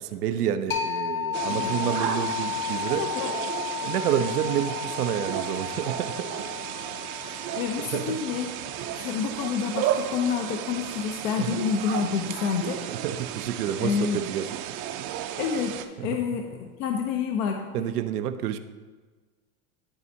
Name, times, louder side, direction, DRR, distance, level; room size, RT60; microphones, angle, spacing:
voice 1, 0.0-3.1 3.8-6.3 7.9-8.2 11.4-11.6 12.9-14.6 16.0-16.2 17.7-18.6, right 10 dB, 90° right, 10 dB, 0.7 m, -29 dB
sound 1, 0.7-10.1, left 9 dB, 25° left, 1.0 m, -34 dB
sound 2, 1.3-15.9, right 11 dB, 40° right, 0.6 m, -33 dB
voice 2, 3.0-3.3 7.2-8.5 8.9-12.8 13.8-14.2 15.3-17.6, left 6 dB, 60° left, 4 dB, 0.8 m, -28 dB
12.5 x 4.2 x 2.8 m, 1.4 s
hypercardioid pair, 115°, 45 cm